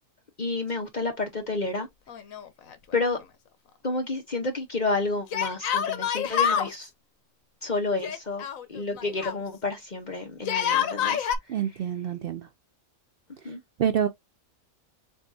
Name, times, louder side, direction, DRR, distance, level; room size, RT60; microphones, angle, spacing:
voice 1, 0.4-1.9 2.9-3.2 3.8-6.9 7.6-8.4 8.7-11.3 13.4-13.6, left 3 dB, 40° left, 0.9 m, -30 dB
Yell, 2.1-2.9 3.2-3.3 5.3-6.7 8.0-9.4 10.4-11.4, left 8 dB, 80° left, 1.2 m, -27 dB
voice 2, 11.5-12.5 13.8-14.1, right 9 dB, 65° right, 0.5 m, -26 dB
7.1 x 2.4 x 2.6 m
omnidirectional pair, 1.4 m